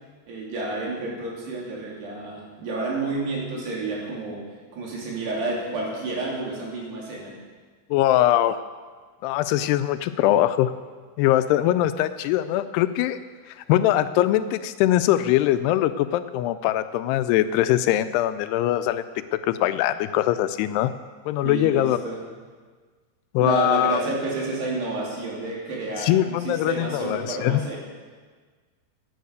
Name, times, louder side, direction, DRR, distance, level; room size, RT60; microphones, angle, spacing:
voice 1, 0.3-4.4 4.7-7.3 21.4-22.2 23.4-27.8, right 3 dB, 75° right, -3 dB, 5.1 m, -30 dB
voice 2, 7.9-8.6 9.2-10.7 11.2-13.2 13.5-19.0 19.4-20.9 21.3-22.0 23.3-24.0 26.0-27.6, left 13 dB, 85° left, 11 dB, 2.5 m, -22 dB
11.5 x 10.0 x 8.2 m, 1.5 s
omnidirectional pair, 4.8 m